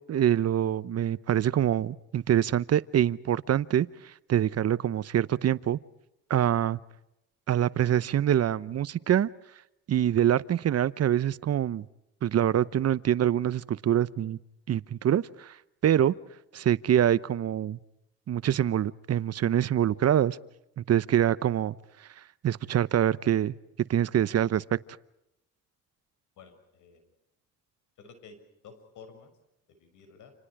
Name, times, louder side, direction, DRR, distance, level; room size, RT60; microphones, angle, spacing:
voice 1, 0.1-5.8 6.3-6.8 7.5-9.3 9.9-11.8 12.2-14.4 14.7-15.6 15.8-16.1 16.5-17.8 18.3-20.4 20.8-21.8 22.4-23.5 23.9-24.8, right 10 dB, 55° right, 17 dB, 0.9 m, -25 dB
voice 2, 26.4-27.1 28.0-28.4 28.6-29.3 29.7-30.3, left 5 dB, 80° left, 8 dB, 6.5 m, -51 dB
30.0 x 28.5 x 4.9 m, 0.83 s
cardioid pair, 90°, 30 cm